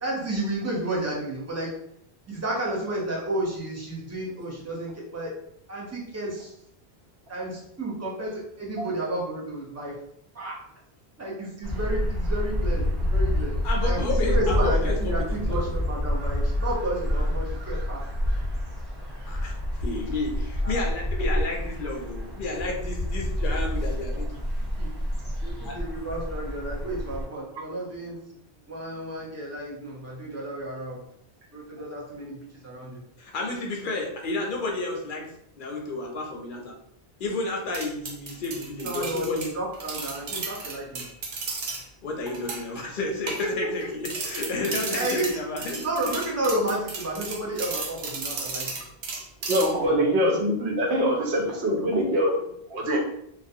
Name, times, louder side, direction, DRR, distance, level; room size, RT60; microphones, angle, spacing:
voice 1, 0.0-1.8 2.3-5.4 5.7-6.5 7.3-10.0 10.3-10.6 11.2-13.5 13.8-18.1 20.6-20.8 24.8-24.9 25.4-28.2 28.7-31.0 31.5-33.0 38.8-41.1 43.1-43.7 44.9-45.3 45.8-48.7 49.8-49.9, right 1 dB, 25° right, -4 dB, 0.4 m, -31 dB
sound 1, 11.6-27.2, left 1 dB, 25° left, 0.7 m, -28 dB
voice 2, 13.6-14.9 15.3-15.4 19.3-24.3 25.6-25.8 33.2-35.3 35.6-36.7 37.2-39.5 42.0-45.8, left 2 dB, 60° left, 0 dB, 0.6 m, -31 dB
sound 2, 37.7-41.8 42.3-42.8 43.3-43.8 44.0-49.9, right 4 dB, 60° right, 0.6 m, -34 dB
voice 3, 49.5-53.0, equal, 85° right, 0 dB, 0.9 m, -24 dB
2.4 x 2.1 x 2.6 m, 0.74 s
omnidirectional pair, 1.1 m